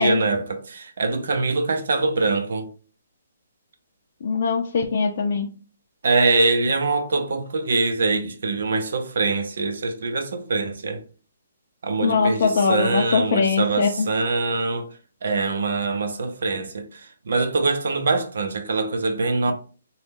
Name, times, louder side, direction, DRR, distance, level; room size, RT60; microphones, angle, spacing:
voice 1, 0.0-2.7 6.0-11.0 11.8-14.8 15.2-17.0 17.3-19.5, right 3 dB, 65° right, 0.7 m, -23 dB
voice 2, 4.2-5.5 12.0-14.1, left 5 dB, 45° left, 0.5 m, -21 dB
3.9 x 2.3 x 3.5 m
hypercardioid pair, 170°, 0 cm